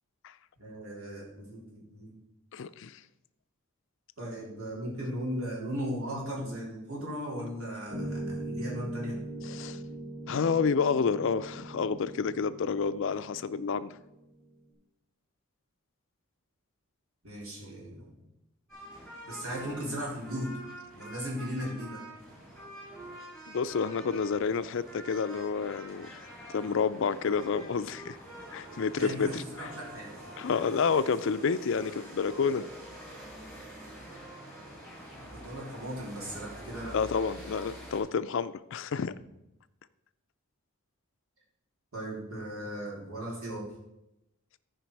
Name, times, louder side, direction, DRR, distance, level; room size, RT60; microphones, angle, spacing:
voice 1, 0.6-2.2 4.2-9.1 17.2-18.1 19.3-20.5 20.9-22.0 29.0-30.1 35.2-37.0 41.9-43.6, equal, 75° right, -4 dB, 3.6 m, -37 dB
voice 2, 2.5-3.0 9.4-9.8 10.3-13.9 23.5-26.2 26.5-28.2 28.5-29.7 30.4-32.7 36.9-39.1, left 5 dB, 60° left, 14 dB, 0.4 m, -29 dB
sound 1, 7.9-14.4, right 1 dB, 60° right, 2.8 m, -40 dB
sound 2, 18.7-38.0, right 1 dB, ahead, 3.7 m, -46 dB
14.0 x 5.1 x 4.6 m, 0.91 s
head